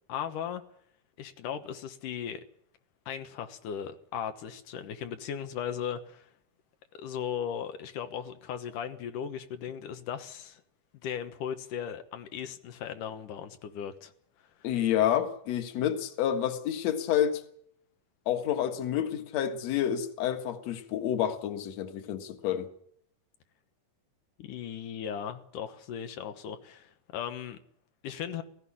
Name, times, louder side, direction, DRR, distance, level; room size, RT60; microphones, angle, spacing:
voice 1, 0.1-0.6 1.2-2.4 3.1-6.3 6.9-10.6 11.0-14.1 14.6-14.7 24.4-27.6 28.0-28.4, left 8 dB, 85° left, 2.8 m, -37 dB
voice 2, 14.6-17.4 18.3-22.7, left 10 dB, 60° left, 2.6 m, -29 dB
17.5 x 15.5 x 10.0 m
omnidirectional pair, 3.6 m